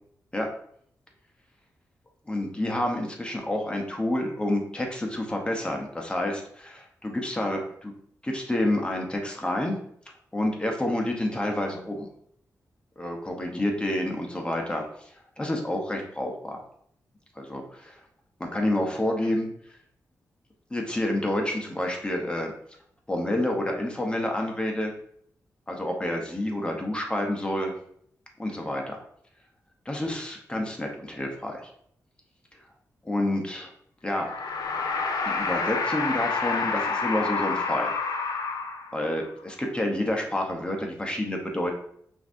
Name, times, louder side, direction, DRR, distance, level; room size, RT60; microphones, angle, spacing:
voice 1, 2.3-7.9 8.2-9.8 10.3-12.1 13.0-14.9 15.4-16.6 17.4-18.0 18.4-19.5 20.7-22.5 23.1-25.0 25.7-27.7 28.4-29.0 29.9-31.6 33.0-33.7 34.0-34.3 35.3-37.9 38.9-41.7, left 1 dB, 15° left, 1 dB, 0.9 m, -28 dB
sound 1, 34.1-39.2, left 4 dB, 75° left, 0.5 m, -28 dB
5.7 x 2.8 x 2.6 m, 0.67 s
cardioid pair, 80°, 7 cm